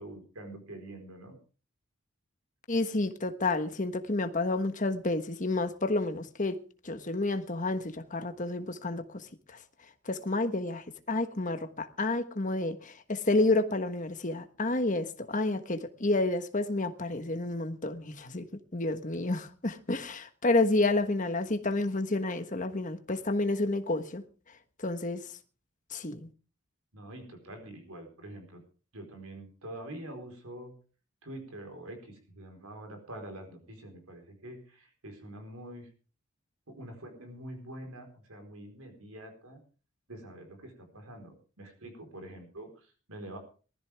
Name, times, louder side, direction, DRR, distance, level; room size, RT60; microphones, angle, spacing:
voice 1, 0.0-1.4 26.9-28.6 28.9-30.7 31.2-35.9 36.7-39.6 40.1-43.4, right 1 dB, 90° right, 4.4 m, -45 dB
voice 2, 2.7-6.6 6.8-9.2 10.1-18.4 18.7-24.2 24.8-25.2 25.9-26.3, left 2 dB, 35° left, 1.3 m, -30 dB
19.5 x 14.0 x 3.5 m
head